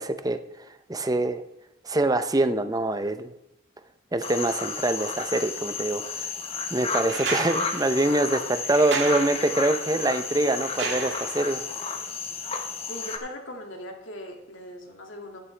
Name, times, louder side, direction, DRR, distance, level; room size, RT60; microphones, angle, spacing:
voice 1, 0.0-1.4 1.8-3.3 4.1-6.3 6.7-11.6, right 2 dB, 20° right, 10 dB, 0.7 m, -25 dB
sound 1, 4.2-13.2, left 5 dB, 30° left, 1.2 m, -32 dB
sound 2, 7.1-11.7 13.3-13.4, right 4 dB, 65° right, 1.9 m, -34 dB
voice 2, 12.9-15.4, left 1 dB, 70° left, 2 dB, 2.4 m, -40 dB
12.0 x 11.0 x 3.4 m, 0.87 s
head